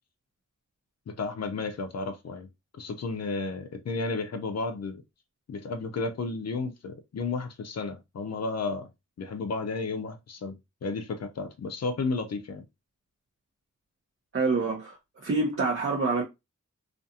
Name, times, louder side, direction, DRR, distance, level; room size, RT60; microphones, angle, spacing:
voice 1, 1.1-2.5 2.7-5.0 5.5-8.9 9.2-10.5 10.8-12.6, left 3 dB, 55° left, 0.6 m, -32 dB
voice 2, 14.3-16.2, right 3 dB, 45° right, 0.7 m, -27 dB
2.5 x 2.3 x 2.7 m
wide cardioid pair, 80°, 31 cm